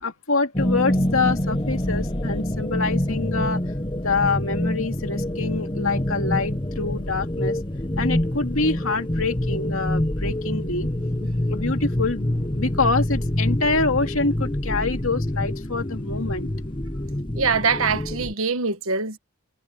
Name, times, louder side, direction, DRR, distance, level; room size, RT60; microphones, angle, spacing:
voice 1, 0.0-3.6 4.0-7.6 8.0-10.9 11.3-16.5, left 3 dB, 70° left, 2.5 m, -26 dB
sound 1, 0.5-18.3, left 1 dB, 20° left, 1.2 m, -26 dB
voice 2, 17.3-19.2, right 5 dB, 70° right, 1.5 m, -23 dB
head